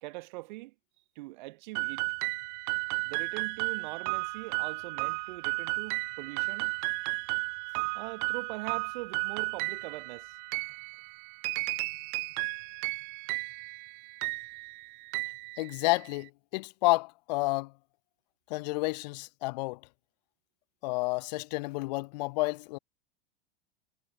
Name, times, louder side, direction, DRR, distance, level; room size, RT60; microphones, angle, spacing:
voice 1, 0.0-0.7 1.1-2.1 3.0-6.8 7.9-10.4, right 22 dB, 50° right, 1.5 m, -42 dB
sound 1, 1.7-16.2, right 40 dB or more, 30° right, 0.4 m, -34 dB
voice 2, 15.6-17.7 18.5-19.8 20.8-22.8, left 24 dB, 45° left, 0.6 m, -30 dB
figure-of-eight pair, 85°, 30 cm